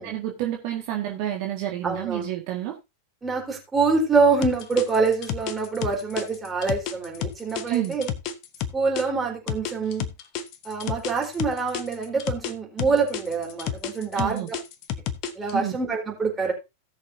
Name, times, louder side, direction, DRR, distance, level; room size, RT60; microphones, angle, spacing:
voice 1, 0.1-2.8 7.7-8.0 14.1-14.5 15.5-15.7, right 12 dB, 45° right, 1.8 m, -29 dB
voice 2, 1.8-2.3 3.2-8.1 8.7-10.1 10.6-14.5 15.3-16.5, right 4 dB, 15° right, 4.1 m, -25 dB
sound 1, 4.4-9.0 9.5-12.5 12.8-15.5, left 8 dB, 40° left, 1.1 m, -30 dB
17.5 x 6.5 x 2.7 m
figure-of-eight pair, 90°, 0 cm